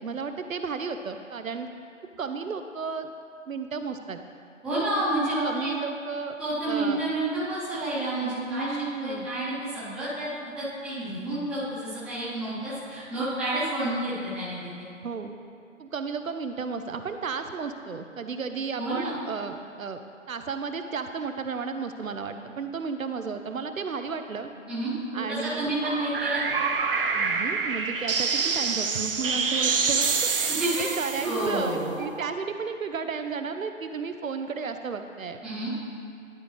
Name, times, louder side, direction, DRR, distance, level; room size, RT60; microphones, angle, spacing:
voice 1, 0.0-1.7 2.2-3.1 3.5-4.2 5.4-6.3 6.7-7.0 8.5-9.3 15.0-15.3 15.8-20.0 20.3-24.5 25.1-25.7 27.1-35.4, right 5 dB, 85° right, 7 dB, 0.7 m, -33 dB
voice 2, 4.6-5.7 6.4-10.3 10.6-14.9 18.8-19.1 24.7-26.4 30.6-30.8 31.2-31.9 35.4-35.7, right 1 dB, ahead, -13 dB, 0.9 m, -30 dB
sound 1, 25.8-32.3, right 5 dB, 45° right, 0.5 m, -27 dB
12.0 x 5.1 x 3.2 m, 2.4 s
figure-of-eight pair, 145°, 39 cm